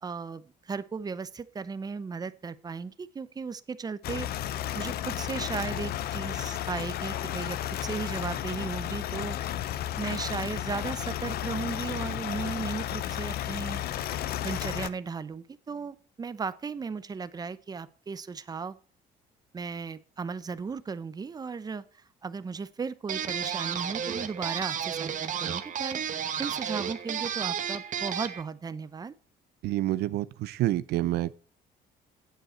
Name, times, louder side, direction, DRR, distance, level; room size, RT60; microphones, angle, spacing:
voice 1, 0.0-4.3 4.7-9.4 10.0-13.8 14.4-18.8 19.5-26.0 26.4-29.1, right 5 dB, 25° right, 0.7 m, -36 dB
sound 1, 4.0-14.9, left 12 dB, 65° left, 0.7 m, -33 dB
sound 2, 23.1-28.4, right 8 dB, 50° right, 1.2 m, -32 dB
voice 2, 29.6-31.3, right 15 dB, 75° right, 0.5 m, -28 dB
9.0 x 7.8 x 4.3 m
cardioid pair, 110°, 17 cm